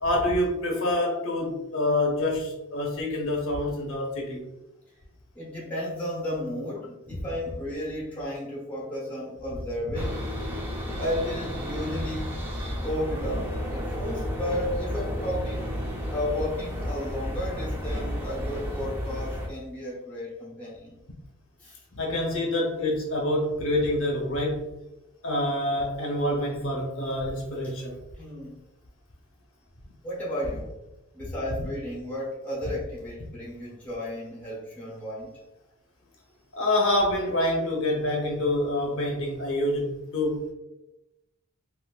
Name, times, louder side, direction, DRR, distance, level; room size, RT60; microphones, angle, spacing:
voice 1, 0.0-4.4 7.1-7.2 21.9-24.7 25.2-28.0 36.5-40.5, left 1 dB, 60° left, 0 dB, 0.8 m, -26 dB
voice 2, 5.3-10.3 11.0-12.4 12.7-15.7 16.1-20.9 21.6-21.8 28.2-28.6 30.0-30.7 31.1-35.4, left 1 dB, 10° left, -6 dB, 1.0 m, -33 dB
sound 1, 9.9-19.5, equal, 10° right, 0.6 m, -32 dB
3.6 x 2.6 x 2.3 m, 0.93 s
head